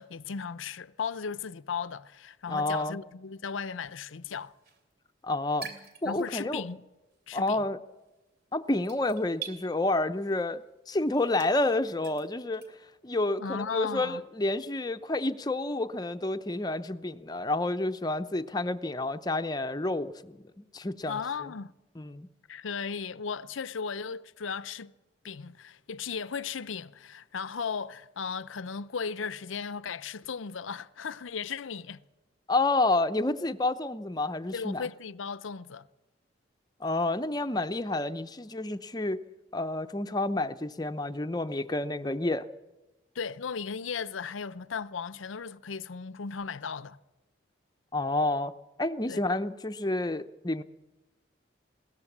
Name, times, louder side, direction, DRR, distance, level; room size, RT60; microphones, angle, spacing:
voice 1, 0.0-4.5 6.0-6.8 7.3-7.6 13.4-14.2 21.1-21.7 22.5-24.9 25.2-32.0 34.5-35.9 43.1-47.0 49.1-49.2, left 6 dB, 80° left, 0.6 m, -36 dB
voice 2, 2.5-3.0 5.2-5.7 6.0-6.6 7.3-7.8 8.5-10.6 10.9-12.6 13.0-21.5 22.0-22.3 32.5-34.9 36.8-39.2 39.5-42.5 47.9-48.5 48.8-50.6, left 2 dB, 20° left, 0.6 m, -29 dB
sound 1, 4.0-6.7 7.0-12.7, right 7 dB, 50° right, 3.1 m, -47 dB
20.5 x 17.5 x 7.3 m
head